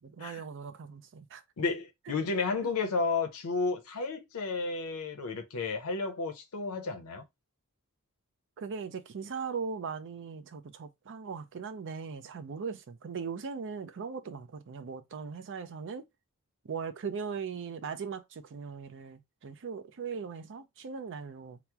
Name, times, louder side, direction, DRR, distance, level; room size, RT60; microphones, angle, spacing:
voice 1, 0.0-1.4 2.6-2.7 8.6-16.0 16.6-21.6, right 5 dB, 55° right, 0.5 m, -39 dB
voice 2, 1.6-7.2, left 4 dB, 75° left, 0.6 m, -32 dB
2.9 x 2.0 x 3.4 m
head